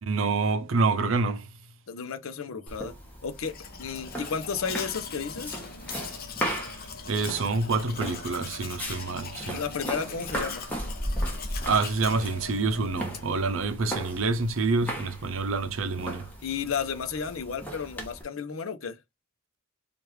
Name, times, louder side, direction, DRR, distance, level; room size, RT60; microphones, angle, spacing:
voice 1, 0.0-1.5 6.5-6.6 7.1-9.6 11.6-16.3, right 4 dB, 70° right, 0.6 m, -27 dB
voice 2, 1.9-2.9 3.2-5.6 9.5-10.6 16.4-19.0, left 6 dB, 85° left, 0.6 m, -33 dB
sound 1, 2.7-18.2, equal, 10° left, 1.2 m, -37 dB
Domestic sounds home sounds, 3.3-13.4, left 6 dB, 45° left, 0.6 m, -41 dB
4.6 x 2.4 x 3.2 m
head